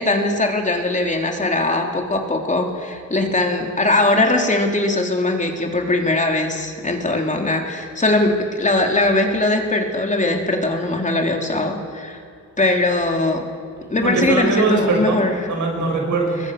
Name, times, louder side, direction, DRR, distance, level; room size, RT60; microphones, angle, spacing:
voice 1, 0.0-12.2 12.6-13.4 13.9-15.4, left 2 dB, 25° left, 2 dB, 3.6 m, -20 dB
voice 2, 14.0-16.4, right 3 dB, 75° right, 1 dB, 7.3 m, -21 dB
29.5 x 22.5 x 6.8 m, 2.2 s
cardioid pair, 105°, 30 cm